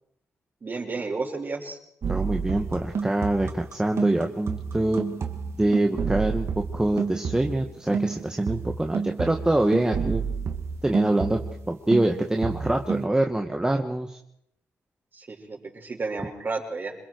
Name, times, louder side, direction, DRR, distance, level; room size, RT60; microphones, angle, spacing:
voice 1, 0.6-1.8 15.1-17.0, right 3 dB, 40° right, 0 dB, 6.2 m, -32 dB
sound 1, 2.0-7.7 7.9-11.7 11.9-13.0, right 6 dB, 60° right, 2.5 m, -30 dB
voice 2, 2.1-5.1 5.6-10.2 10.8-11.4 11.7-14.2, right 1 dB, 15° right, 3 dB, 1.8 m, -25 dB
27.5 x 22.0 x 4.8 m, 0.73 s
cardioid pair, 85°, 5 cm